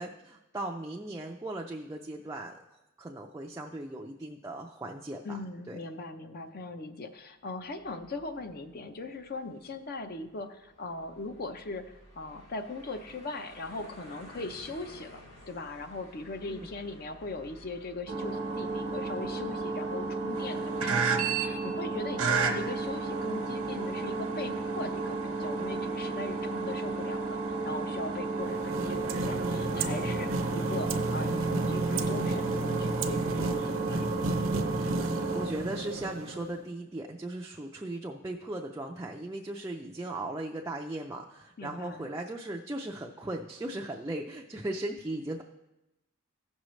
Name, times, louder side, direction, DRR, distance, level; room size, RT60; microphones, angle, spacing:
voice 1, 0.0-2.6 3.0-5.3 5.7-5.8 16.5-16.7 35.3-45.4, right 1 dB, 15° right, 0 dB, 0.4 m, -37 dB
voice 2, 5.2-15.2 15.5-27.4 27.6-34.4 41.6-42.1, left 2 dB, 45° left, 7 dB, 0.6 m, -40 dB
sound 1, 7.6-19.8, equal, 65° left, 2.0 m, -54 dB
sound 2, 18.1-35.5, right 4 dB, 85° right, 1.0 m, -32 dB
sound 3, 28.3-36.6, right 2 dB, 65° right, 0.7 m, -32 dB
15.0 x 6.3 x 3.1 m, 0.95 s
head